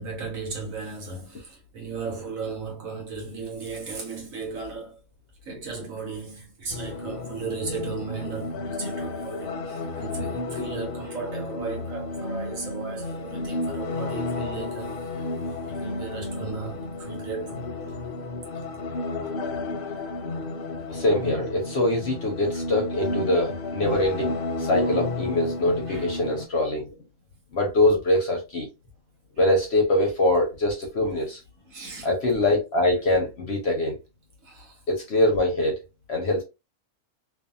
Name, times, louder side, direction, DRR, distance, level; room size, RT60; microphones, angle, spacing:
voice 1, 0.0-5.0 5.5-14.9 15.6-17.7 25.9-26.1 31.7-32.2 34.4-34.8, right 4 dB, 65° right, 1.4 m, -36 dB
sound 1, 6.7-26.4, left 2 dB, 90° left, 0.4 m, -32 dB
voice 2, 20.9-26.9 27.5-28.7 29.4-31.4 32.0-33.9 34.9-35.7 36.1-36.4, left 1 dB, 55° left, 0.8 m, -23 dB
2.6 x 2.6 x 2.3 m
omnidirectional pair, 1.6 m